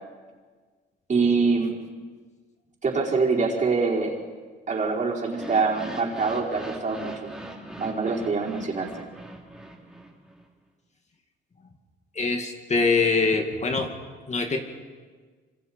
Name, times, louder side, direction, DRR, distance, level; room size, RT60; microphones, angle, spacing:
voice 1, 1.1-1.7 2.8-4.2 4.7-7.3 7.8-8.9, right 4 dB, 40° right, -2 dB, 4.9 m, -24 dB
sound 1, 5.3-10.4, right 1 dB, 5° right, 3.1 m, -40 dB
voice 2, 12.1-13.9 14.3-14.6, left 4 dB, 35° left, 4 dB, 2.3 m, -23 dB
27.0 x 25.5 x 4.5 m, 1.5 s
cardioid pair, 90°, 20 cm